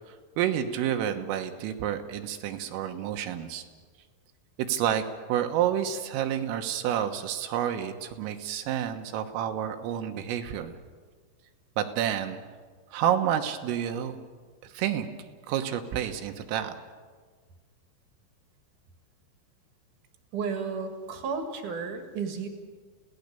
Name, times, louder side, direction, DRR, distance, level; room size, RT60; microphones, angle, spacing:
voice 1, 0.1-3.6 4.6-10.8 11.8-12.4 12.9-14.2 14.6-15.1 15.5-16.8, right 10 dB, 85° right, 5 dB, 3.9 m, -29 dB
voice 2, 20.3-22.5, right 5 dB, 55° right, 5 dB, 2.7 m, -33 dB
28.5 x 17.5 x 6.9 m, 1.5 s
omnidirectional pair, 5.8 m